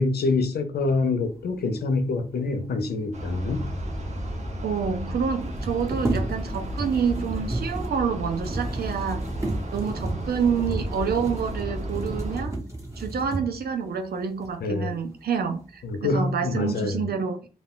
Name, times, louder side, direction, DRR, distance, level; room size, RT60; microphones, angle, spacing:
voice 1, 0.0-3.7 14.6-14.9 15.8-17.1, left 3 dB, 85° left, 0.5 m, -26 dB
sound 1, 3.1-12.5, equal, 45° right, 0.8 m, -33 dB
sound 2, 3.9-4.0 4.2-4.3 5.4-13.7 14.4-14.5 15.0-15.6 16.0-16.5, right 2 dB, 20° right, 1.2 m, -33 dB
voice 2, 4.6-9.3 9.7-12.6 13.0-17.5, right 6 dB, 80° right, 0.4 m, -28 dB
2.3 x 2.2 x 3.5 m
cardioid pair, 50°, 16 cm